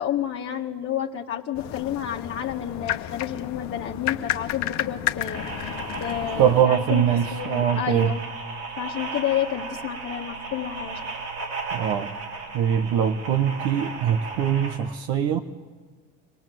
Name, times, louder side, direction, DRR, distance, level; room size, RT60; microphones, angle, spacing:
voice 1, 0.0-5.4 6.0-8.2 8.8-11.0, left 10 dB, 45° left, 0 dB, 1.5 m, -30 dB
sound 1, 1.5-6.6, left 13 dB, 60° left, 1.1 m, -31 dB
sound 2, 5.3-14.8, right 4 dB, 85° right, 5.5 m, -35 dB
voice 2, 6.4-8.1 11.7-12.1 12.5-15.4, right 9 dB, 65° right, 6 dB, 1.2 m, -22 dB
25.5 x 18.5 x 7.7 m, 1.4 s
supercardioid pair, 80°, 32 cm